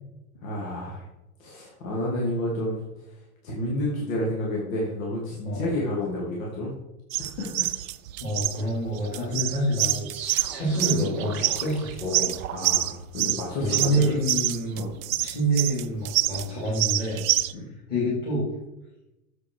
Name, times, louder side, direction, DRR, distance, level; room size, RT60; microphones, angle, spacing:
voice 1, 0.4-1.1 1.4-2.8 3.1-3.2 3.4-6.7 7.2-7.7 12.5-14.2 14.8-14.9 17.5-17.7, left 1 dB, 60° left, -3 dB, 3.0 m, -30 dB
sound 1, 7.1-17.5, right 15 dB, 65° right, 0.6 m, -27 dB
voice 2, 8.2-10.1 10.5-12.4 13.6-14.8 15.2-17.2 17.9-18.5, equal, 20° left, -8 dB, 3.3 m, -27 dB
sound 2, 10.1-12.9, right 4 dB, 5° right, 0.4 m, -35 dB
8.4 x 7.7 x 4.8 m, 0.95 s
supercardioid pair, 155°, 45 cm